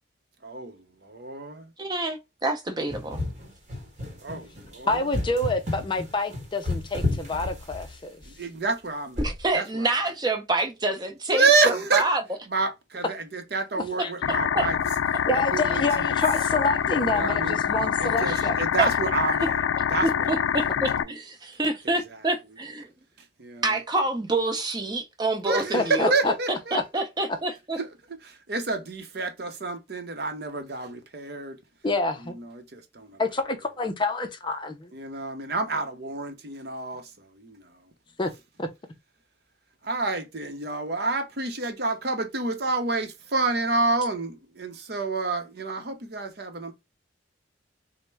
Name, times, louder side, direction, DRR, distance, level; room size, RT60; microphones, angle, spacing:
voice 1, 0.4-0.7 1.1-1.6 4.2-5.1 8.3-9.2 9.5-9.9 11.3-12.1 12.5-14.8 15.3-16.2 17.1-17.6 18.0-19.6 19.9-20.3 21.0-21.1 21.8-21.9 23.4-23.8 25.5-26.8 27.2-27.3 27.8-27.9 28.2-31.6 32.2-33.2 34.9-37.7 39.8-46.7, right 3 dB, 55° right, 0.7 m, -28 dB
voice 2, 1.8-3.2 9.2-12.2 14.5-14.7 18.3-18.5 18.8-18.9 19.3-19.4 20.0-22.9 23.6-26.3 26.7-27.8, right 2 dB, 20° right, 0.7 m, -27 dB
sound 1, 2.9-8.2 9.2-9.5, left 2 dB, 40° right, 1.1 m, -32 dB
voice 3, 4.9-8.2 14.0-14.1 15.3-18.7 25.7-26.3 26.7-26.8 31.8-32.3 33.2-34.9 38.2-38.3 38.6-38.7, left 2 dB, 25° left, 0.5 m, -27 dB
sound 2, 14.2-21.0, left 8 dB, 85° left, 0.3 m, -25 dB
4.1 x 2.1 x 3.3 m
head